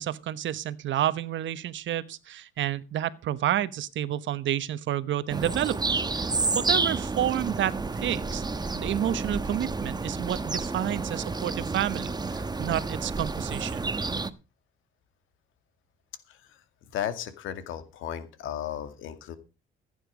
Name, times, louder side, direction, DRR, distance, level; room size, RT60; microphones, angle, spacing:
voice 1, 0.0-6.3 6.5-8.4 8.7-13.9, right 11 dB, 70° right, 1.1 m, -30 dB
sound 1, 5.3-14.3, right 3 dB, 20° right, 1.2 m, -30 dB
voice 2, 16.3-19.4, left 10 dB, 90° left, 2.3 m, -35 dB
15.5 x 9.3 x 5.0 m
cardioid pair, 90°, 20 cm